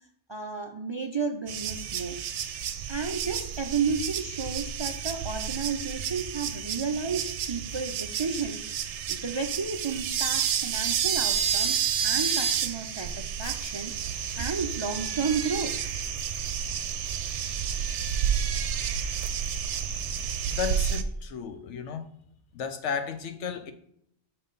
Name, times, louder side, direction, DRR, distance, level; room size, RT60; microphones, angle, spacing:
voice 1, 0.3-2.2 2.9-8.6 9.1-15.7, right 5 dB, 45° right, 4 dB, 0.3 m, -32 dB
sound 1, 1.5-21.0, right 8 dB, 80° right, 0.9 m, -30 dB
voice 2, 20.5-22.0 22.5-23.7, left 6 dB, 85° left, 8 dB, 1.1 m, -33 dB
5.9 x 5.5 x 3.9 m, 0.70 s
omnidirectional pair, 1.2 m